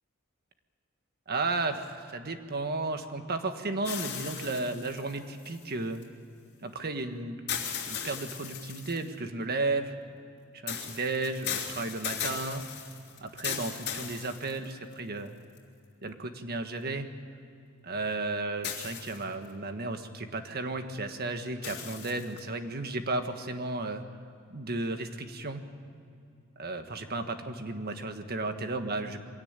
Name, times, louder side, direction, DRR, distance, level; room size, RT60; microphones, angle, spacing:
voice 1, 1.3-6.0 6.6-7.4 7.9-9.9 10.6-12.6 13.2-15.4 16.0-17.1 17.8-24.0 24.5-25.6 26.6-29.2, right 2 dB, 50° right, 7 dB, 1.6 m, -34 dB
sound 1, 3.8-6.0 7.5-9.1 10.7-14.9 15.6-15.7 18.6-19.5 21.6-22.4, left 8 dB, 55° left, 3.2 m, -37 dB
23.0 x 17.5 x 9.0 m, 2.6 s
head